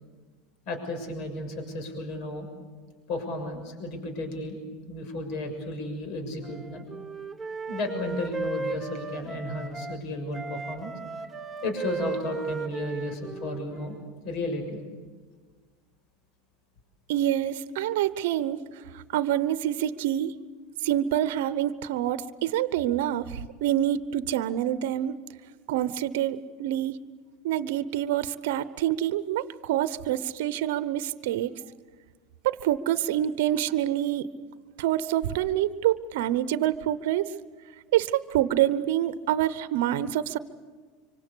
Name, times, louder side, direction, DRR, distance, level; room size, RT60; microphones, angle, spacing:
voice 1, 0.6-2.5 3.1-4.6 4.9-6.9 7.7-10.9 11.6-14.0 14.2-14.8, left 2 dB, 60° left, 5 dB, 6.6 m, -33 dB
Wind instrument woodwind instrument, 6.4-10.0 10.3-14.1, right 4 dB, 10° right, 2.4 m, -36 dB
voice 2, 17.1-20.4 20.8-25.1 25.7-27.0 27.4-31.5 32.4-34.3 34.8-37.3 37.9-40.4, right 12 dB, 70° right, 15 dB, 0.9 m, -26 dB
25.5 x 24.5 x 8.4 m, 1.4 s
hypercardioid pair, 95°, 0 cm